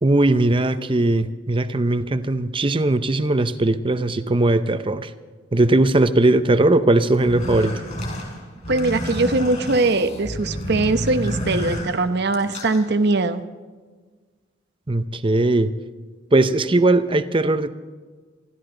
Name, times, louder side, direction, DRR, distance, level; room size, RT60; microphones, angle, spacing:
voice 1, 0.0-5.1 5.5-7.7 14.9-15.7 16.3-17.7, right 2 dB, 25° right, 11 dB, 0.7 m, -19 dB
sound 1, 7.1-12.8, equal, 40° left, 5.4 m, -30 dB
voice 2, 8.7-13.4, right 2 dB, 60° right, 10 dB, 0.9 m, -21 dB
27.5 x 13.0 x 3.9 m, 1.4 s
head